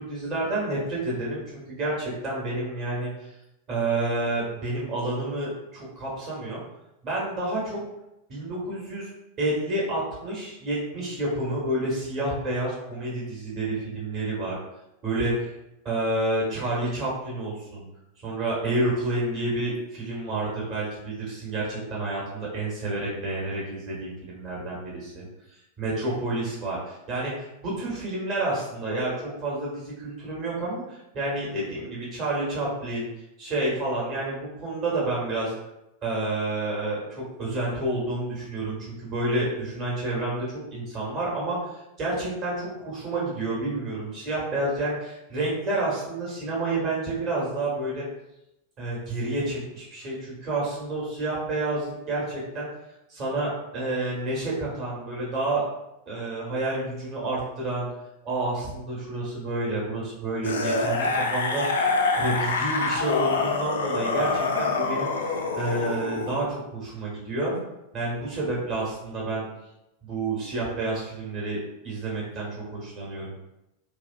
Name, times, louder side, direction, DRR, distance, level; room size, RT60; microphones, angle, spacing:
voice 1, 0.0-3.3 3.7-6.6 7.0-7.8 8.3-9.1 9.4-14.5 15.0-15.5 15.8-17.8 18.2-25.2 25.8-33.1 33.4-35.5 36.0-40.5 40.7-48.1 48.8-52.7 53.1-55.6 56.1-57.9 58.2-67.5 67.9-69.4 70.0-73.3, right 2 dB, 35° right, -5 dB, 1.2 m, -29 dB
sound 1, 60.4-66.4 67.5-67.6, left 4 dB, 65° left, 0.3 m, -26 dB
2.6 x 2.3 x 2.3 m, 0.89 s
figure-of-eight pair, 90°, 0 cm